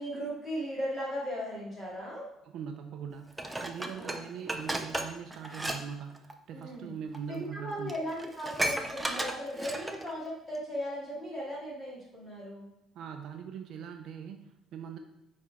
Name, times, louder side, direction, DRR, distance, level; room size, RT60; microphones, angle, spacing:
voice 1, 0.0-2.3 3.9-4.2 6.5-6.9 7.3-12.7, equal, 15° left, -7 dB, 2.6 m, -37 dB
voice 2, 2.5-8.0 12.9-15.0, right 7 dB, 55° right, 5 dB, 0.5 m, -41 dB
Dishes pots and pans, 3.4-5.8 6.1-6.3 7.1-7.2 7.6-7.7 7.9-10.1 10.6-10.7, right 1 dB, 5° right, 0.5 m, -34 dB
9.7 x 4.2 x 3.6 m, 0.83 s
cardioid pair, 180°, 0 cm